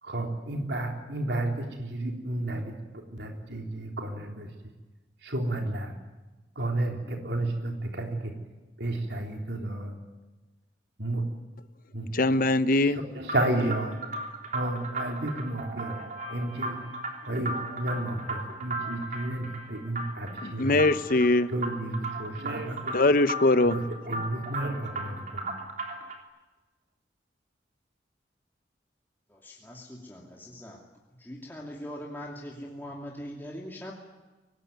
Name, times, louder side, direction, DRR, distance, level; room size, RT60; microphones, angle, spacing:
voice 1, 0.0-4.5 5.2-5.9 6.6-8.3 8.8-9.9 11.0-11.2 11.9-12.1 12.8-14.0 14.5-16.0 16.3-16.8 17.3-20.9 21.5-23.0 23.6-23.8 24.1-25.5, right 1 dB, 70° right, 2 dB, 3.7 m, -32 dB
voice 2, 12.1-13.0 20.4-21.5 22.9-23.8, left 2 dB, 50° left, 14 dB, 0.9 m, -22 dB
sound 1, 13.2-26.2, right 2 dB, 45° right, 3.4 m, -36 dB
voice 3, 29.3-30.8 31.2-33.9, equal, 10° left, -2 dB, 2.7 m, -41 dB
24.5 x 19.0 x 9.4 m, 1.2 s
head